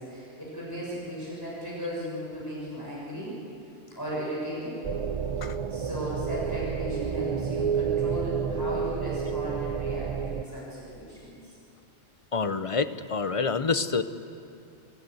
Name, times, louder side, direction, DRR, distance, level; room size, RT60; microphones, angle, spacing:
voice 1, 0.0-3.3 3.9-4.8 5.4-11.5, equal, 20° left, -7 dB, 6.7 m, -36 dB
sound 1, 4.8-10.4, right 7 dB, 45° right, 0.5 m, -30 dB
voice 2, 12.3-14.0, left 4 dB, 35° left, 11 dB, 0.7 m, -27 dB
25.0 x 15.5 x 7.9 m, 2.8 s
omnidirectional pair, 1.2 m